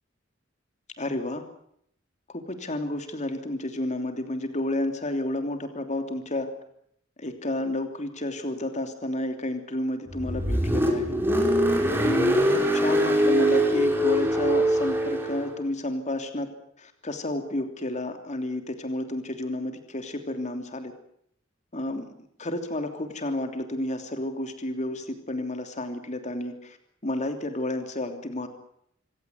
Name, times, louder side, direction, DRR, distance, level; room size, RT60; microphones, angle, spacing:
voice 1, 1.0-1.4 2.3-6.5 7.2-11.2 12.0-16.5 16.8-20.9 21.7-22.0 22.4-26.8 27.0-28.5, left 1 dB, 35° left, 7 dB, 3.1 m, -31 dB
Car, 10.1-15.5, equal, 10° right, 4.8 m, -23 dB
27.0 x 17.0 x 9.5 m, 0.70 s
head